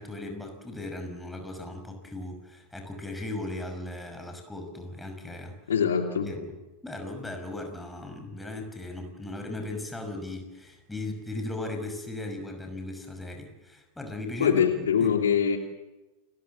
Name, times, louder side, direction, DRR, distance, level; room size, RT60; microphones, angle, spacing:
voice 1, 0.0-5.6 6.2-6.5 6.8-14.6 15.0-15.1, left 2 dB, 5° left, 5 dB, 5.8 m, -37 dB
voice 2, 5.7-6.3 14.4-15.6, left 7 dB, 65° left, 5 dB, 2.9 m, -23 dB
29.5 x 20.5 x 7.8 m, 1.1 s
figure-of-eight pair, 90°, 0 cm